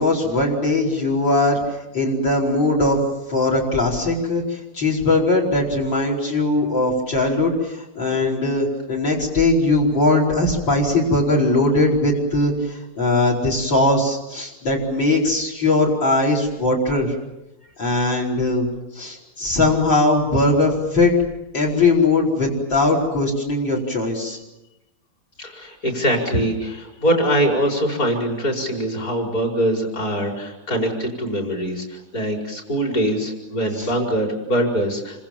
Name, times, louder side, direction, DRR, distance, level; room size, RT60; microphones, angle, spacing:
voice 1, 0.0-1.6 1.9-3.0 3.3-17.1 17.8-18.7 19.0-21.1 21.5-24.4 33.8-33.9, left 2 dB, 60° left, 2 dB, 5.5 m, -20 dB
voice 2, 25.4-35.3, equal, 40° left, 0 dB, 5.6 m, -23 dB
28.5 x 26.0 x 7.4 m, 0.94 s
omnidirectional pair, 2.3 m